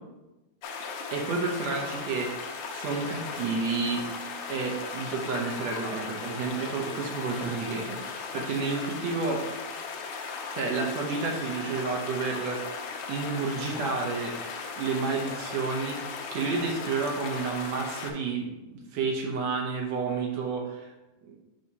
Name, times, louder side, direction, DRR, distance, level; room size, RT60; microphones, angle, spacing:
sound 1, 0.6-18.1, left 5 dB, 75° left, 2.1 m, -37 dB
voice 1, 1.1-4.1 4.5-9.5 10.5-12.7 13.1-14.4 14.7-20.9 21.2-21.4, right 4 dB, 70° right, 1 dB, 1.7 m, -30 dB
7.4 x 4.8 x 2.8 m, 1.1 s
omnidirectional pair, 3.6 m